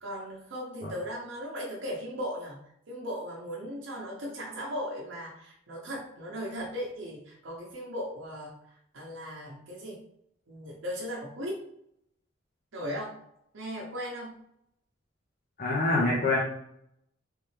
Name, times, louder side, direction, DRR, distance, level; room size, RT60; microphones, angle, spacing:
voice 1, 0.0-2.6 2.9-8.5 8.9-10.0 10.5-11.6 12.7-13.1 13.5-14.4, equal, 70° right, -2 dB, 0.8 m, -37 dB
voice 2, 15.6-16.4, left 2 dB, 45° left, -4 dB, 0.7 m, -25 dB
3.3 x 3.2 x 3.2 m, 0.75 s
head